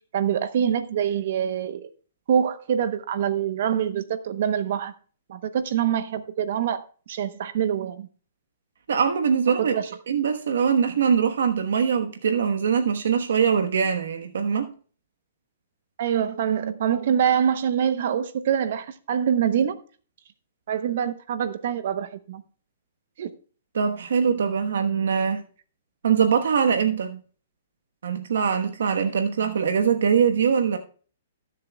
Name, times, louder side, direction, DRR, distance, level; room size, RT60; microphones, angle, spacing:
voice 1, 0.1-1.9 2.3-4.9 5.3-6.8 7.1-8.1 9.5-9.9 16.0-19.8 20.7-22.4 23.2-23.3, right 8 dB, 55° right, 0.8 m, -25 dB
voice 2, 8.9-9.7 10.1-14.7 23.7-25.4 26.0-27.2 28.0-30.8, right 7 dB, 80° right, 1.1 m, -22 dB
19.0 x 7.5 x 2.3 m
hypercardioid pair, 160°, 0 cm